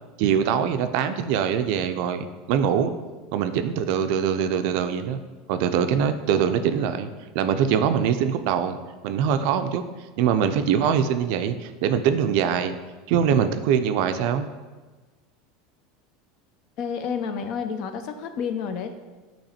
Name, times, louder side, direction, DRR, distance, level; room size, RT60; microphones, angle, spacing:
voice 1, 0.2-2.9 3.3-5.2 5.5-7.1 7.3-8.8 9.0-9.8 10.2-12.7 13.1-14.5, right 8 dB, 55° right, 9 dB, 0.4 m, -23 dB
voice 2, 16.8-18.9, left 6 dB, 45° left, 8 dB, 0.5 m, -30 dB
8.6 x 3.0 x 4.2 m, 1.3 s
supercardioid pair, 165°, 0 cm